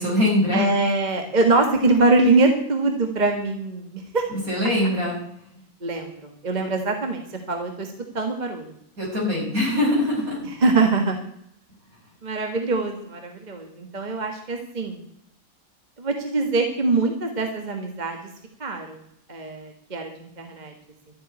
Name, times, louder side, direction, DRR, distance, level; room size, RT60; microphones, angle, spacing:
voice 1, 0.0-0.6 4.3-5.2 9.0-10.4, left 1 dB, 65° right, -2 dB, 6.4 m, -22 dB
voice 2, 0.5-4.2 5.8-7.2 7.5-8.6 10.4-11.2 12.2-15.0 16.0-18.2 18.6-19.0 19.3-20.7, right 3 dB, 30° right, 4 dB, 1.6 m, -23 dB
12.5 x 7.5 x 9.7 m, 0.73 s
omnidirectional pair, 1.6 m